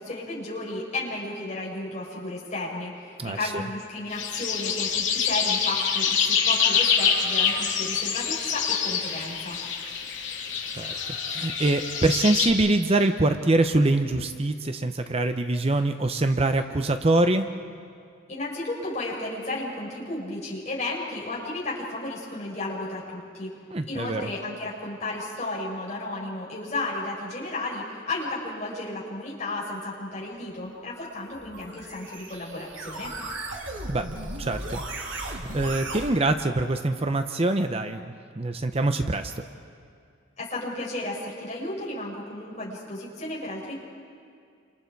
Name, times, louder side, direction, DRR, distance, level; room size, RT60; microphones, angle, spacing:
voice 1, 0.0-9.6 18.3-23.5 23.9-33.1 40.4-43.7, left 2 dB, 35° left, -6 dB, 6.4 m, -33 dB
voice 2, 3.2-3.6 10.8-17.5 23.7-24.3 33.9-34.1 34.4-38.0 38.4-39.3, right 2 dB, 30° right, 8 dB, 0.7 m, -24 dB
sound 1, 4.1-12.5, left 6 dB, 70° left, 2.7 m, -26 dB
sound 2, 31.1-36.1, right 2 dB, 80° right, 3.1 m, -36 dB
29.0 x 27.0 x 4.7 m, 2.4 s
head